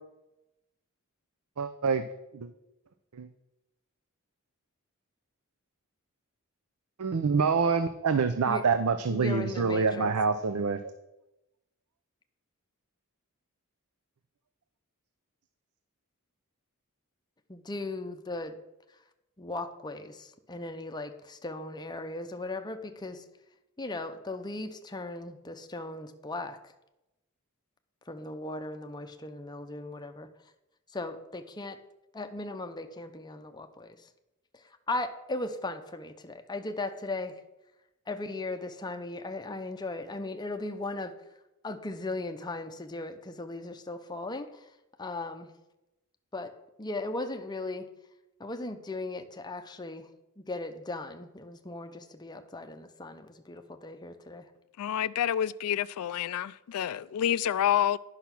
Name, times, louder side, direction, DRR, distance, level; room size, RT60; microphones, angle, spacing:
voice 1, 1.6-2.0 2.3-2.5 3.2-3.3 7.0-10.8, right 5 dB, 75° right, 0.5 m, -26 dB
voice 2, 9.1-10.1 17.5-18.6 19.4-23.2 23.8-26.6 28.1-30.3 30.9-31.8 32.1-34.1 34.5-37.3 38.1-41.1 41.6-44.7 45.0-45.5 46.3-47.9 48.4-50.1 50.4-54.4, left 2 dB, 20° left, 0.7 m, -37 dB
voice 3, 54.8-58.0, left 10 dB, 75° left, 0.3 m, -28 dB
10.0 x 5.8 x 5.9 m
head